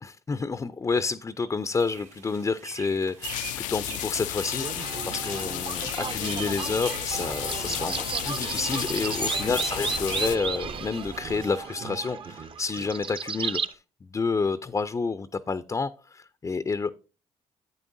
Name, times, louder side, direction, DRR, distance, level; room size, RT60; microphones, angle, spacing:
voice 1, 0.0-16.9, left 4 dB, 25° left, 0.5 m, -29 dB
sound 1, 1.7-11.6, right 8 dB, 75° right, 1.9 m, -45 dB
sound 2, 3.2-10.4, left 14 dB, 75° left, 0.4 m, -33 dB
sound 3, 4.0-13.7, right 5 dB, 40° right, 0.8 m, -34 dB
11.0 x 8.3 x 2.7 m
supercardioid pair, 65°, 13 cm